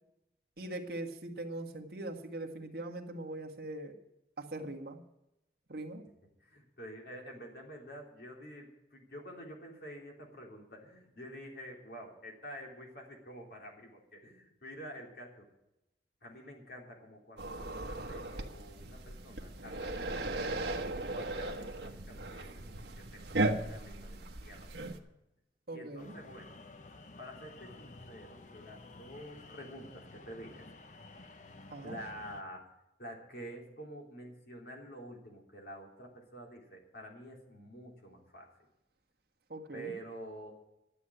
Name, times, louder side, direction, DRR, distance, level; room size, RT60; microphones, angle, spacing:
voice 1, 0.6-4.0 4.4-5.0 5.7-6.1 25.7-26.2 31.7-32.0 39.5-39.9, right 2 dB, 60° right, 2 dB, 1.7 m, -41 dB
voice 2, 6.4-15.5 16.2-20.7 21.1-24.9 25.7-26.6 27.2-30.7 31.8-32.7 33.0-38.5 39.7-40.5, equal, 60° left, 0 dB, 3.5 m, -48 dB
sound 1, 17.4-25.0, right 2 dB, 75° right, 1.2 m, -37 dB
sound 2, 26.0-32.4, left 2 dB, 45° left, 0.9 m, -52 dB
12.0 x 8.0 x 9.9 m, 0.90 s
head